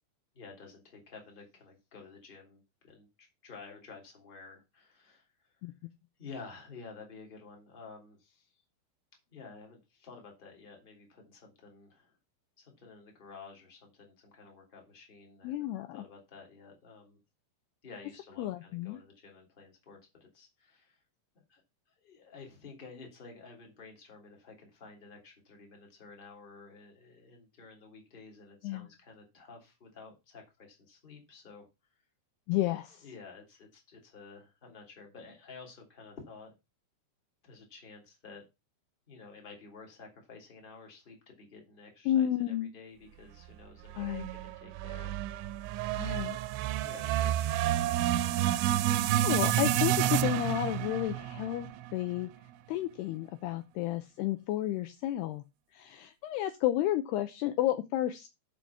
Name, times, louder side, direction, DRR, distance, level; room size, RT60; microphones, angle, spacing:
voice 1, 0.3-5.7 6.2-8.6 9.3-12.2 12.6-15.7 15.9-17.2 17.8-21.0 21.5-21.6 22.0-31.7 33.0-36.5 37.4-38.4 39.1-45.1 45.4-45.5 46.1-46.5 46.8-48.0, left 4 dB, 15° left, 2 dB, 2.0 m, -51 dB
voice 2, 15.4-16.0 18.4-19.0 28.6-28.9 32.5-33.0 42.1-42.7 44.0-44.3 46.0-46.4 49.2-52.3 52.7-55.4 55.7-58.3, left 13 dB, 85° left, 9 dB, 2.4 m, -31 dB
sound 1, 43.9-52.3, right 12 dB, 80° right, 3.0 m, -30 dB
11.5 x 5.1 x 5.7 m, 0.25 s
omnidirectional pair, 5.5 m